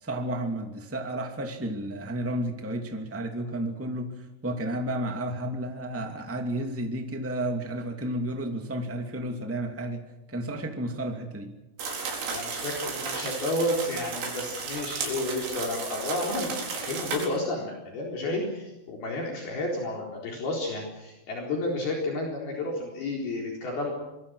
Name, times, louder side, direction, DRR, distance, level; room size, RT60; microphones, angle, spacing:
voice 1, 0.0-4.2 4.4-10.0 10.3-11.5, right 1 dB, 20° right, 4 dB, 0.3 m, -32 dB
sound 1, 11.8-17.3, right 5 dB, 65° right, 6.5 m, -34 dB
voice 2, 12.3-23.9, left 1 dB, 55° left, 0 dB, 5.7 m, -31 dB
26.0 x 22.5 x 6.4 m, 0.99 s
omnidirectional pair, 5.5 m